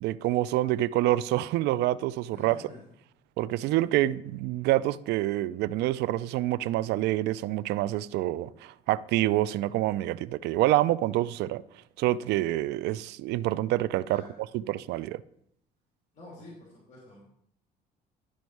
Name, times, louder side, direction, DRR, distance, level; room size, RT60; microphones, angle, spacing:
voice 1, 0.0-2.6 3.4-11.6 12.0-14.2 14.5-15.2, right 15 dB, 85° right, 0.4 m, -27 dB
voice 2, 2.3-2.8 3.8-4.1 14.1-14.4 16.1-17.2, left 1 dB, 45° left, 2.9 m, -49 dB
11.5 x 5.2 x 4.6 m
cardioid pair, 110°, 17 cm